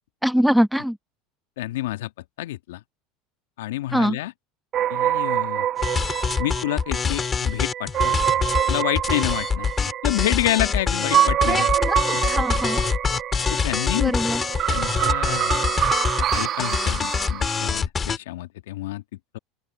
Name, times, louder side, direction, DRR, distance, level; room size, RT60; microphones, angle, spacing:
voice 1, 0.2-1.0 3.9-4.2 11.4-12.8 14.0-14.4, equal, ahead, 1.1 m, -23 dB
voice 2, 1.6-2.1 2.4-2.8 3.6-4.3 4.9-5.7 6.4-8.2 8.7-9.7 10.0-11.7 13.5-14.1 14.7-15.9 16.2-19.0, left 16 dB, 75° left, 1.6 m, -28 dB
sound 1, 4.7-17.8, right 11 dB, 45° right, 1.5 m, -26 dB
sound 2, 5.8-18.2, left 6 dB, 30° left, 2.9 m, -25 dB
open air
hypercardioid pair, 80°, 0 cm